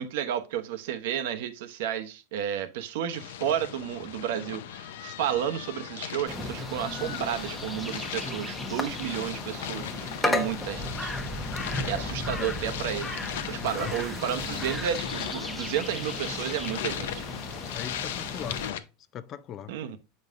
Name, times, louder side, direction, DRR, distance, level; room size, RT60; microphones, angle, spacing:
voice 1, 0.0-11.1 11.8-13.2 13.5-17.2 19.7-20.0, right 10 dB, 70° right, 0.9 m, -32 dB
sound 1, 3.1-18.8, left 10 dB, 90° left, 0.7 m, -38 dB
sound 2, 6.3-18.7, left 1 dB, 5° left, 0.9 m, -35 dB
voice 2, 13.6-14.0 17.7-18.8 19.1-19.7, left 10 dB, 35° left, 0.5 m, -39 dB
sound 3, 13.7-15.3 16.0-17.4 18.3-18.4, right 6 dB, 30° right, 1.2 m, -46 dB
8.0 x 5.4 x 2.5 m
supercardioid pair, 150°, 0 cm